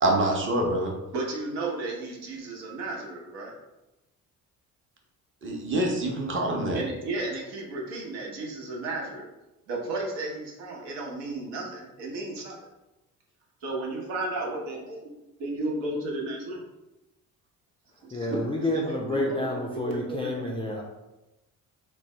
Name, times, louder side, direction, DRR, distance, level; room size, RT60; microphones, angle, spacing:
voice 1, 0.0-0.9 5.4-6.8, right 1 dB, 25° right, 0 dB, 0.8 m, -25 dB
voice 2, 1.1-3.5 6.7-9.3 9.7-12.5 13.6-16.6 18.0-18.4 19.1-20.5, right 2 dB, 60° right, -2 dB, 0.9 m, -33 dB
voice 3, 18.1-20.8, left 1 dB, 10° left, -3 dB, 0.4 m, -29 dB
3.4 x 2.1 x 3.2 m, 0.99 s
figure-of-eight pair, 45°, 46 cm